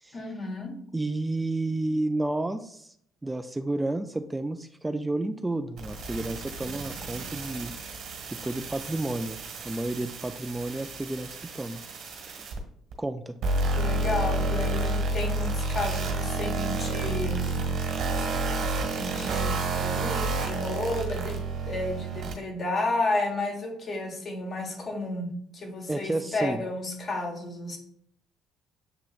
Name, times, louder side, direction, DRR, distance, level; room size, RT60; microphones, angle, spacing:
voice 1, 0.1-0.7 13.7-17.6 19.0-21.4 21.6-25.3 25.5-27.8, left 2 dB, 45° left, 2 dB, 1.3 m, -32 dB
voice 2, 0.9-2.9 3.2-7.7 8.3-11.8 13.0-13.4 25.9-26.6, right 2 dB, 15° right, 9 dB, 0.3 m, -31 dB
sound 1, 5.8-12.6 12.9-13.0 13.4-22.3, right 3 dB, 60° right, 1.3 m, -30 dB
7.5 x 2.8 x 2.4 m, 0.67 s
hypercardioid pair, 55°, 0 cm